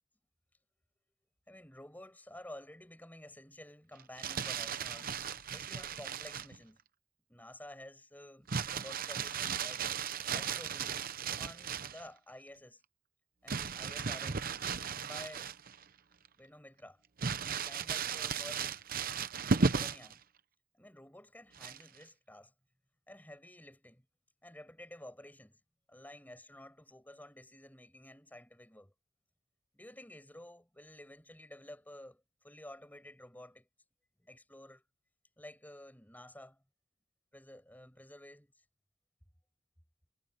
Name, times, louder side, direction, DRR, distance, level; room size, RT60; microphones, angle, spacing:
voice 1, 1.5-5.2 5.5-6.8 7.3-11.0 11.3-12.8 13.4-14.4 15.0-15.5 16.4-17.0 17.6-18.8 19.6-20.2 20.7-22.5 23.1-24.1 24.4-25.6 25.9-28.9 29.7-33.7 34.2-34.8 35.4-36.6 37.3-38.6, left 1 dB, 10° left, 5.6 m, -52 dB
Crumpling crinkling, 4.0-6.6 8.5-12.0 13.5-15.8 16.2-16.3 17.2-20.1 21.6-22.0, right 5 dB, 45° right, 0.8 m, -35 dB
head